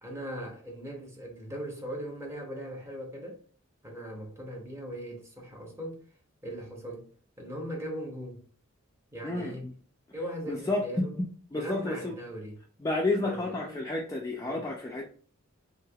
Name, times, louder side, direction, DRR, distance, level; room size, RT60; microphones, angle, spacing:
voice 1, 0.0-3.4 3.8-6.0 6.4-7.1 7.4-8.5 9.1-9.7 10.1-11.1 11.5-12.6 13.2-13.7 14.4-14.6, equal, 15° right, 0.7 m, -39 dB
voice 2, 9.2-9.7 10.5-12.2 12.8-15.0, left 2 dB, 15° left, 0.3 m, -31 dB
3.2 x 2.6 x 2.3 m
head